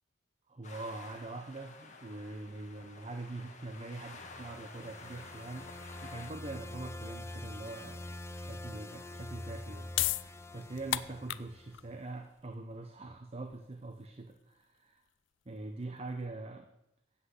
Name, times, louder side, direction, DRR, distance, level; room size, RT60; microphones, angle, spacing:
voice 1, 0.5-8.0 8.3-15.0 15.5-16.7, right 2 dB, 30° right, 6 dB, 0.7 m, -43 dB
sound 1, 0.6-6.3, left 3 dB, 40° left, 1.3 m, -51 dB
sound 2, 3.8-12.0, left 1 dB, 15° left, 0.5 m, -46 dB
sound 3, 9.9-16.3, left 14 dB, 70° left, 0.4 m, -38 dB
8.1 x 7.9 x 8.0 m, 0.87 s
head